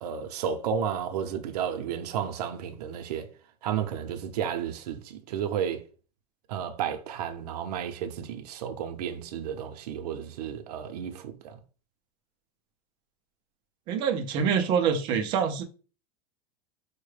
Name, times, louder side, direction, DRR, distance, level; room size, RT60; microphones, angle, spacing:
voice 1, 0.0-3.3 3.6-5.8 6.5-11.6, right 8 dB, 85° right, 0.6 m, -32 dB
voice 2, 13.9-15.6, right 7 dB, 25° right, 0.4 m, -25 dB
4.6 x 2.1 x 3.2 m
supercardioid pair, 180°, 20 cm